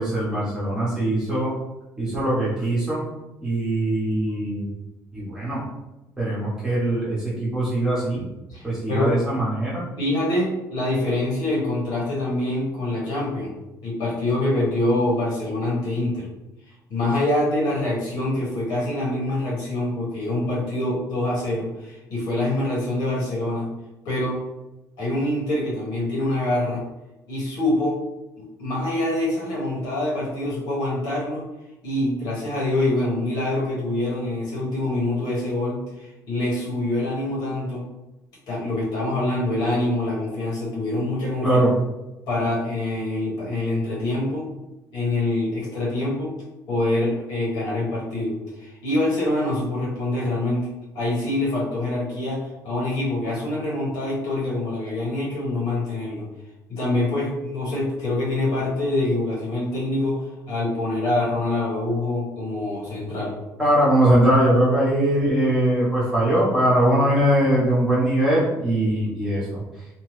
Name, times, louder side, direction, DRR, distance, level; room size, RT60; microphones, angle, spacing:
voice 1, 0.0-1.5 2.0-3.0 3.4-4.7 5.1-5.6 6.2-8.3 8.6-9.8 41.4-41.7 63.6-69.6, right 1 dB, 10° right, -8 dB, 1.0 m, -21 dB
voice 2, 8.5-9.2 10.0-13.5 13.8-16.3 16.9-23.7 24.0-24.4 25.0-26.8 27.3-28.0 28.4-31.4 31.8-37.8 38.5-41.6 42.3-44.5 44.9-46.3 46.7-50.7 50.9-56.3 56.7-63.3, left 1 dB, 70° left, -5 dB, 1.4 m, -25 dB
2.9 x 2.3 x 3.2 m, 1.0 s
cardioid pair, 175°, 7 cm